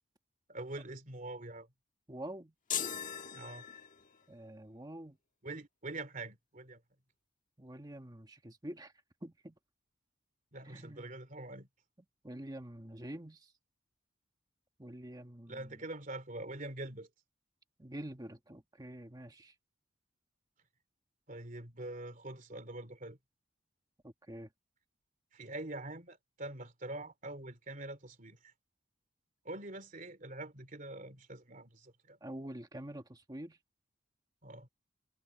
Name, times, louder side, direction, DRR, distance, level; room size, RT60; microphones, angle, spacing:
voice 1, 0.5-1.7 3.3-3.6 5.4-6.8 10.5-11.7 15.5-17.1 21.3-23.2 25.3-28.5 29.4-32.2 34.4-34.7, right 2 dB, 40° right, 2.9 m, -44 dB
voice 2, 2.1-2.5 4.3-5.2 7.6-8.9 9.2-9.6 10.6-11.1 12.2-13.5 14.8-15.8 17.8-19.5 24.0-24.5 32.2-33.6, right 1 dB, 20° right, 1.3 m, -46 dB
sound 1, 2.7-4.3, left 8 dB, 40° left, 1.5 m, -39 dB
head